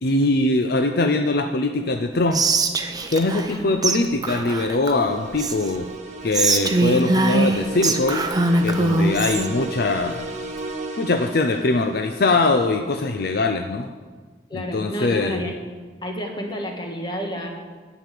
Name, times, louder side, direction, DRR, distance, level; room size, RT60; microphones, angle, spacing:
voice 1, 0.0-2.4 3.1-5.9 6.2-8.3 8.6-10.3 11.0-13.9 14.5-15.4, left 2 dB, 60° left, 6 dB, 0.6 m, -22 dB
Whispering, 2.3-3.6 3.8-4.0 4.2-5.8 6.3-9.5, right 2 dB, 20° right, 0.8 m, -22 dB
voice 2, 3.5-3.8 9.4-9.5 14.5-15.6 16.0-17.5, left 1 dB, 25° left, 2 dB, 1.7 m, -30 dB
sound 1, 5.1-12.1, right 2 dB, 45° right, 1.2 m, -34 dB
9.5 x 7.3 x 8.4 m, 1.4 s
head